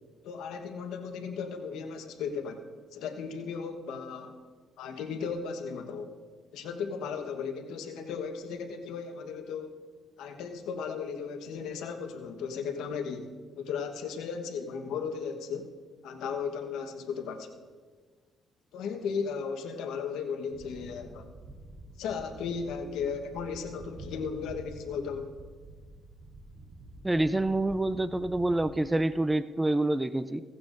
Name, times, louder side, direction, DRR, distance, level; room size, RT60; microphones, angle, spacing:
voice 1, 0.2-2.6 2.9-4.4 4.8-6.1 6.5-9.7 10.2-13.3 13.6-15.7 16.0-17.6 18.7-21.3 22.0-25.3, left 6 dB, 90° left, 5 dB, 1.2 m, -36 dB
sound 1, 20.5-29.2, right 2 dB, 45° right, 3.7 m, -48 dB
voice 2, 27.0-30.4, right 2 dB, 10° right, 12 dB, 0.4 m, -27 dB
17.0 x 15.5 x 2.6 m, 1.5 s
cardioid pair, 90°, 0 cm